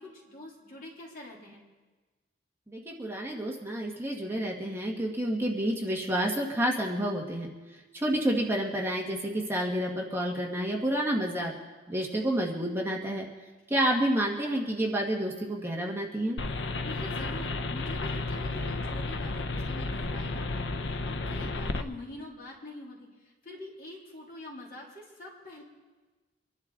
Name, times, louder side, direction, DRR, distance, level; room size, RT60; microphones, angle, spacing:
voice 1, 0.0-1.6 16.8-25.6, left 1 dB, 50° left, -4 dB, 3.6 m, -45 dB
voice 2, 2.7-7.5 7.9-11.5 11.9-13.3 13.7-16.4, right 1 dB, 15° right, -2 dB, 1.5 m, -29 dB
sound 1, 16.4-21.8, left 2 dB, 80° left, 0.8 m, -32 dB
25.0 x 11.5 x 3.8 m, 1.3 s
head